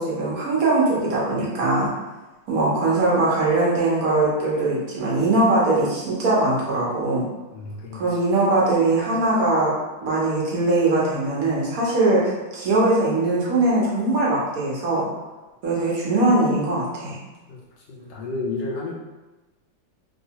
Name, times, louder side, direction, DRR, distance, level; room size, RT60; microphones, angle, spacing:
voice 1, 0.0-1.9 2.5-7.3 7.9-9.7 10.0-15.1 15.6-17.2, right 2 dB, 60° right, -5 dB, 1.0 m, -21 dB
voice 2, 7.5-8.2 17.5-18.9, left 3 dB, 70° left, -3 dB, 1.0 m, -32 dB
3.2 x 2.8 x 2.8 m, 1.1 s
omnidirectional pair, 2.2 m